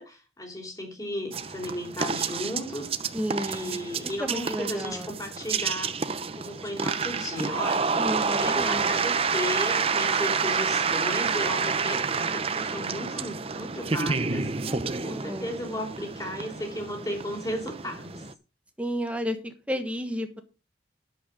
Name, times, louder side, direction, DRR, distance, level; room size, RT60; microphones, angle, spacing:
voice 1, 0.0-6.0 6.4-7.9 8.2-14.5 15.0-18.2, left 1 dB, 20° left, 3.0 m, -35 dB
sound 1, 1.3-18.3, right 5 dB, 30° right, 0.7 m, -29 dB
voice 2, 3.1-3.8 4.0-5.1 8.0-8.8 14.7-15.5 18.8-20.4, equal, 5° right, 1.4 m, -32 dB
11.5 x 7.5 x 5.1 m
head